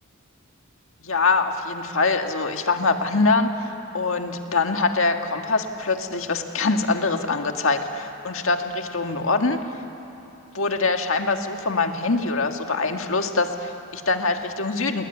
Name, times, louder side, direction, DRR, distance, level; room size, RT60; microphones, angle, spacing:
voice 1, 1.0-9.6 10.5-15.0, left 3 dB, 60° left, 5 dB, 1.8 m, -24 dB
29.5 x 20.5 x 10.0 m, 3.0 s
head